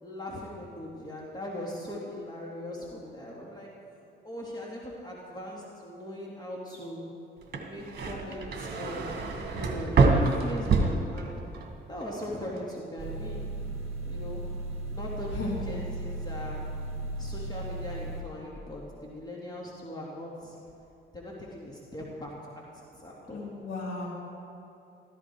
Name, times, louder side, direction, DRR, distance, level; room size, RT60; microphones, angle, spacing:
voice 1, 0.0-3.7 4.2-7.0 7.6-9.2 9.5-11.4 11.9-13.6 14.0-14.4 14.9-16.7 17.2-20.6 21.1-22.3 22.9-23.4, left 1 dB, 20° left, -4 dB, 2.8 m, -40 dB
sound 1, 7.4-11.7 12.0-12.6, right 3 dB, 50° right, 1.9 m, -26 dB
sound 2, 13.0-18.2, right 2 dB, 30° right, 2.9 m, -36 dB
voice 2, 23.3-24.1, left 3 dB, 65° left, -7 dB, 3.8 m, -35 dB
15.0 x 14.5 x 4.8 m, 2.7 s
cardioid pair, 90°, 20 cm